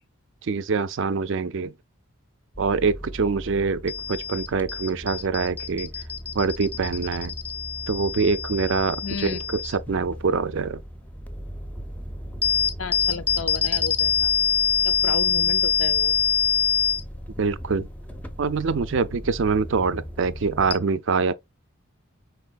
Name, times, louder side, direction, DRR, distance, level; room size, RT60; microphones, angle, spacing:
voice 1, 0.4-1.7 2.6-5.9 6.3-7.3 7.9-10.8 17.4-17.9 18.4-21.3, right 5 dB, 65° right, 0.5 m, -25 dB
sound 1, 2.6-20.7, left 7 dB, 10° left, 0.5 m, -27 dB
voice 2, 9.0-9.4 12.8-14.3 14.8-16.1, left 5 dB, 75° left, 0.5 m, -33 dB
5.4 x 4.1 x 2.4 m
head